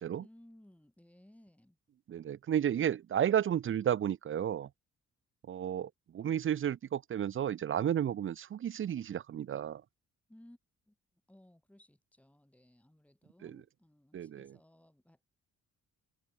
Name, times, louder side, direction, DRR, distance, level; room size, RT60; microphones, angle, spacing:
voice 1, 0.2-1.8 10.3-10.6 10.9-11.0 11.3-15.3, left 1 dB, 5° left, 5.7 m, -60 dB
voice 2, 2.1-4.7 5.5-5.9 6.1-9.8 13.4-13.6 14.1-14.5, right 9 dB, 45° right, 0.6 m, -32 dB
cardioid pair, 90°, 30 cm